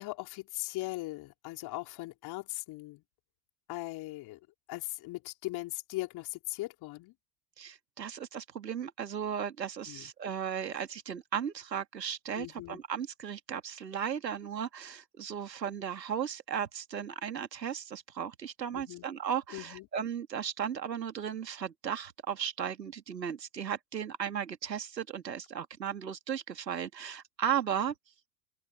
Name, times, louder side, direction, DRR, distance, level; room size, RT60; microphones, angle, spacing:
voice 1, 0.0-3.0 3.7-4.4 4.7-7.1 9.9-10.1 12.3-12.8 18.7-19.1 19.5-19.9, left 19 dB, 50° left, 4.8 m, -39 dB
voice 2, 7.6-27.9, right 8 dB, 85° right, 2.3 m, -36 dB
open air
figure-of-eight pair, 80°, 49 cm